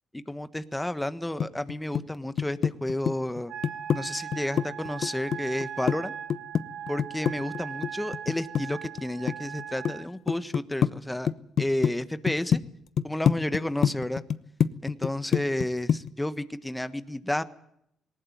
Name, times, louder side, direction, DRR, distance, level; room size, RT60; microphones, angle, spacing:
voice 1, 0.1-3.5 3.9-6.1 6.9-11.3 11.6-12.6 13.0-14.2 14.8-17.4, left 1 dB, 10° left, 12 dB, 1.3 m, -31 dB
sound 1, 1.4-2.1 2.4-4.0 4.3-6.0 6.3-9.0 9.3-9.9 10.3-10.9 11.3-11.9 12.3-12.6 13.0-15.6 15.9-16.1, left 8 dB, 60° left, 0.8 m, -25 dB
Wind instrument woodwind instrument, 3.5-10.1, right 9 dB, 75° right, 6.0 m, -39 dB
19.0 x 19.0 x 9.3 m, 0.74 s
cardioid pair, 90°, 0 cm